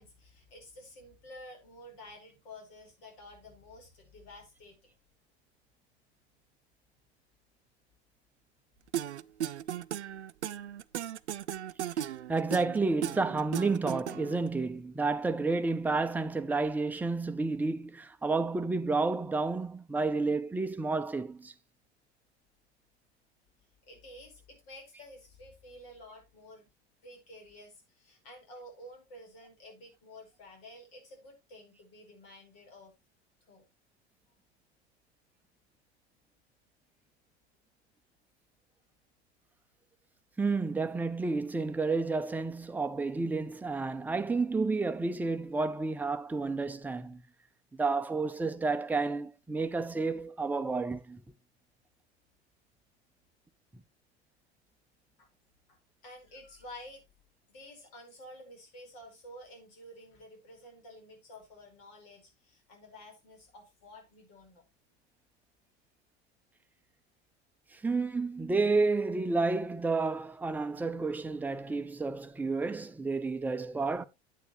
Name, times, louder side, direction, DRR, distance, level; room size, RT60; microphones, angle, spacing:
voice 1, 0.0-5.0 10.8-10.9 23.9-26.7 27.0-32.9 33.5-33.7 55.2-55.3 55.7-55.8 56.0-57.0 57.5-64.6, left 1 dB, 60° left, 5.0 m, -51 dB
sound 1, 8.9-14.5, right 10 dB, 85° right, 0.5 m, -36 dB
voice 2, 12.3-21.5 40.4-47.2 47.7-51.2 67.7-74.0, right 3 dB, 5° right, 0.6 m, -30 dB
9.1 x 9.0 x 3.1 m
figure-of-eight pair, 80°, 33 cm